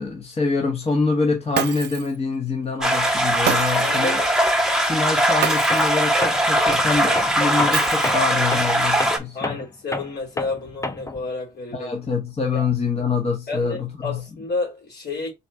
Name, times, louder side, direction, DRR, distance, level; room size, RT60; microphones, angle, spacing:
voice 1, 0.0-4.2 4.9-9.6 11.7-14.2, left 4 dB, 35° left, 1.3 m, -25 dB
Shatter, 1.5-2.2 3.5-4.0 5.4-6.0 7.7-8.4, right 10 dB, 70° right, 0.5 m, -28 dB
sound 1, 2.8-9.2, equal, 5° right, 1.2 m, -20 dB
voice 2, 3.8-4.2 9.3-11.9 12.5-12.6 13.5-15.3, left 3 dB, 70° left, 3.0 m, -30 dB
Tools, 5.7-5.9 6.2-11.3, left 2 dB, 15° left, 0.7 m, -31 dB
4.1 x 3.0 x 3.6 m
supercardioid pair, 55°, 18 cm